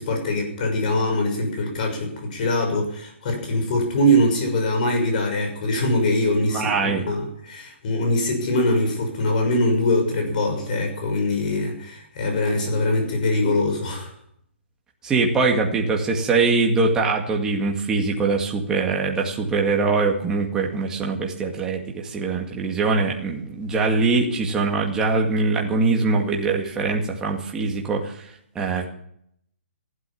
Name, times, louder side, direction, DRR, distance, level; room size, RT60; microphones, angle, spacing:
voice 1, 0.0-14.1, left 1 dB, 40° left, 4 dB, 6.2 m, -23 dB
voice 2, 6.5-7.0 15.0-28.3 28.6-28.9, right 3 dB, 10° right, 0 dB, 2.1 m, -22 dB
15.5 x 12.5 x 7.1 m, 0.69 s
hypercardioid pair, 160°, 7 cm